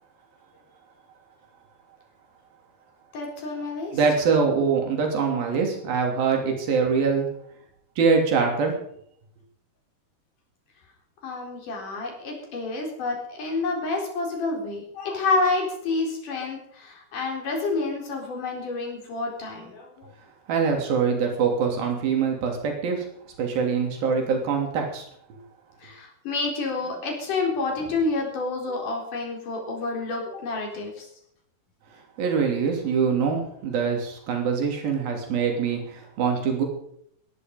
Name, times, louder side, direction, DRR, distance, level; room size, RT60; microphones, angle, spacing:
voice 1, 3.1-3.9 11.2-20.1 25.8-31.1, left 3 dB, 55° left, 1 dB, 5.4 m, -29 dB
voice 2, 3.9-7.3 8.0-8.8 20.5-23.1 23.4-25.0 32.2-36.6, right 5 dB, 65° right, 2 dB, 4.8 m, -24 dB
18.5 x 11.0 x 5.3 m, 0.69 s
omnidirectional pair, 4.6 m